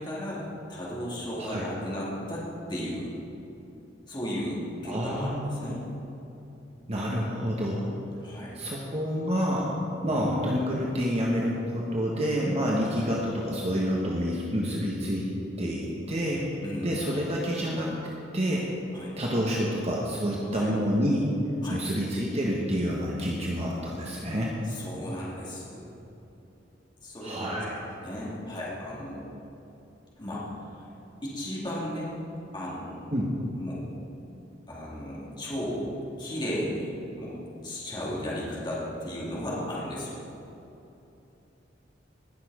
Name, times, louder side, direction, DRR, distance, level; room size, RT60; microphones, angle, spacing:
voice 1, 0.0-3.2 4.1-5.8 8.2-8.6 10.0-10.3 12.9-13.1 16.6-17.2 18.9-19.2 20.5-20.7 21.6-21.8 24.7-25.9 27.0-27.6 28.0-29.3 30.2-30.9 31.2-32.1 32.5-33.1 33.6-33.8 34.7-40.2, equal, 25° left, -6 dB, 2.7 m, -35 dB
voice 2, 4.8-5.7 6.9-7.9 8.5-9.7 10.0-15.3 15.6-16.5 16.8-17.9 18.3-18.7 19.2-21.3 21.7-24.6 27.2-27.8 33.1-33.3, equal, 35° right, -3 dB, 1.3 m, -28 dB
19.5 x 6.9 x 5.0 m, 2.9 s
head